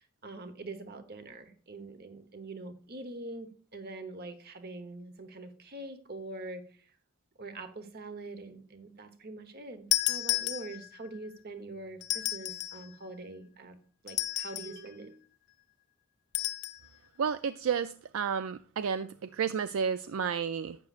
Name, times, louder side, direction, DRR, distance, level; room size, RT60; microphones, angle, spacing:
voice 1, 0.0-6.9 7.4-13.8 14.0-15.2, right 2 dB, 45° right, 1.0 m, -44 dB
sound 1, 9.9-11.1 12.0-12.9 14.1-14.8 16.3-16.8, left 16 dB, 50° left, 0.4 m, -32 dB
voice 2, 17.2-20.8, right 7 dB, 65° right, 0.3 m, -31 dB
11.5 x 8.2 x 2.5 m
head